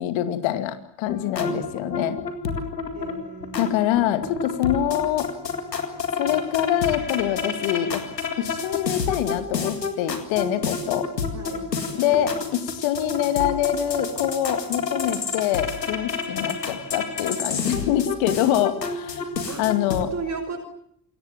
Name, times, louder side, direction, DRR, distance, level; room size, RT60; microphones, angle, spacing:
voice 1, 0.0-2.2 3.6-5.3 6.2-8.0 8.4-11.1 11.9-19.2 19.6-20.1, left 11 dB, 65° left, 10 dB, 2.4 m, -25 dB
sound 1, 1.1-20.0, left 5 dB, 90° left, 2.1 m, -30 dB
voice 2, 2.9-4.2 11.3-11.6 11.9-12.3 19.5-19.6 20.1-20.6, right 4 dB, 35° right, 1 dB, 5.8 m, -35 dB
27.5 x 22.0 x 7.5 m, 0.71 s
figure-of-eight pair, 45°, 48 cm